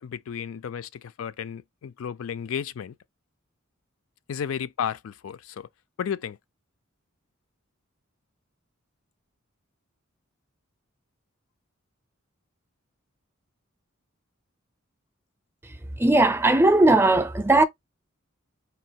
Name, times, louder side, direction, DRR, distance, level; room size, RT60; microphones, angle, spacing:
voice 1, 0.0-2.9 4.3-5.7 6.0-6.4, left 8 dB, 70° left, 0.4 m, -33 dB
voice 2, 15.6-17.6, right 2 dB, 10° right, 0.5 m, -19 dB
4.5 x 2.7 x 2.8 m
head